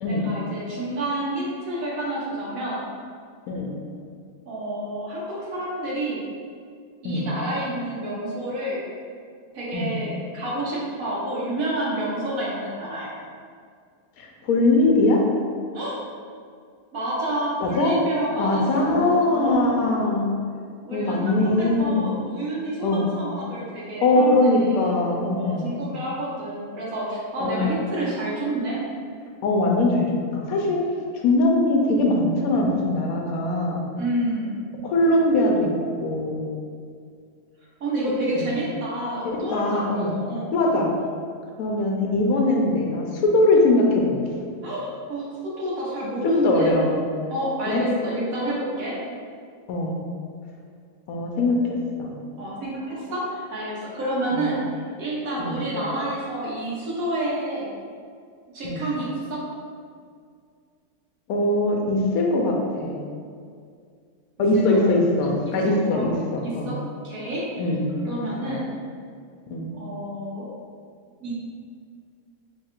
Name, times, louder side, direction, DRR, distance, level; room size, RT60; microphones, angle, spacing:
voice 1, 0.1-2.9 4.5-6.2 7.0-8.8 9.5-13.2 15.7-16.0 16.9-19.9 20.8-25.0 25.3-28.8 34.0-34.6 37.8-40.5 44.6-46.7 47.3-49.0 52.4-57.7 58.5-59.4 65.7-66.1 66.4-66.8 67.0-67.4 68.0-68.7 69.7-70.5 71.2-71.3, right 1 dB, 65° right, -6 dB, 1.3 m, -29 dB
voice 2, 14.2-15.2 17.6-17.9 18.4-20.3 20.9-22.0 22.8-23.1 24.0-25.8 27.4-27.8 29.4-30.8 31.2-33.8 34.8-35.7 36.0-36.4 38.3-38.5 39.2-40.1 40.5-40.9 41.6-44.4 46.2-47.0 47.7-47.8 49.7-49.9 51.1-52.1 54.3-54.5 55.4-55.6 58.6-58.8 61.3-63.0 64.4-66.7 67.6-67.8 68.5-68.6 69.5-69.7, left 2 dB, 75° left, -1 dB, 1.0 m, -21 dB
3.3 x 2.3 x 4.3 m, 2.2 s
omnidirectional pair, 1.6 m